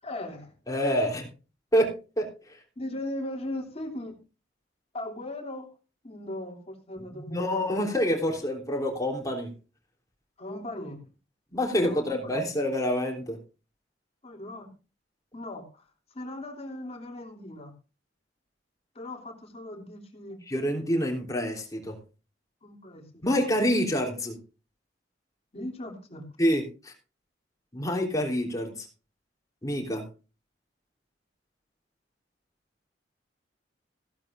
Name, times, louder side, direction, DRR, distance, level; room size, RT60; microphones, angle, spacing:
voice 1, 0.0-0.5 2.8-4.2 4.9-5.7 6.0-7.9 10.4-11.1 11.7-12.5 14.2-14.7 15.3-15.8 16.1-17.7 18.9-20.4 22.6-23.4 25.5-26.3, left 1 dB, 35° left, 3 dB, 3.0 m, -38 dB
voice 2, 0.7-1.3 1.7-1.9 2.2-2.6 7.1-9.5 11.5-13.4 20.5-22.0 23.2-24.4 26.4-26.9 27.7-28.9 29.6-30.0, equal, 20° left, 1 dB, 3.5 m, -27 dB
16.0 x 12.0 x 2.6 m, 0.32 s
head